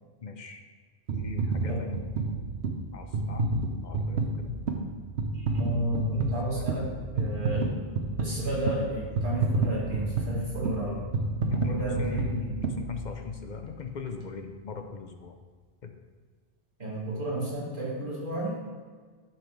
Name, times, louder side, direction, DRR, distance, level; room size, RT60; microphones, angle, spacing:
voice 1, 0.2-0.6 1.1-2.2 2.9-3.5 3.8-4.5 6.6-6.7 11.5-12.3 12.6-15.3 15.8-15.9, left 5 dB, 50° left, 5 dB, 0.7 m, -40 dB
sound 1, 1.1-13.5 14.1-14.2, right 3 dB, 90° right, 1.1 m, -30 dB
voice 2, 5.3-6.9 7.1-7.7 8.2-11.0 11.4-12.6 16.8-18.6, right 1 dB, 50° right, -7 dB, 2.5 m, -32 dB
10.5 x 5.8 x 3.2 m, 1.5 s
omnidirectional pair, 1.1 m